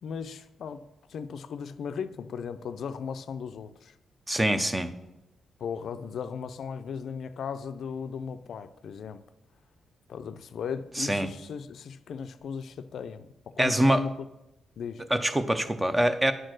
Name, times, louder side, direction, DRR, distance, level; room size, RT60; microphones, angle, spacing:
voice 1, 0.0-3.9 5.6-9.2 10.1-14.1 14.8-15.1, left 6 dB, 70° left, 0.4 m, -37 dB
voice 2, 4.3-4.9 11.0-11.3 13.6-14.0 15.1-16.3, right 1 dB, 15° right, 0.6 m, -24 dB
8.9 x 4.4 x 6.3 m
cardioid pair, 100°, 0 cm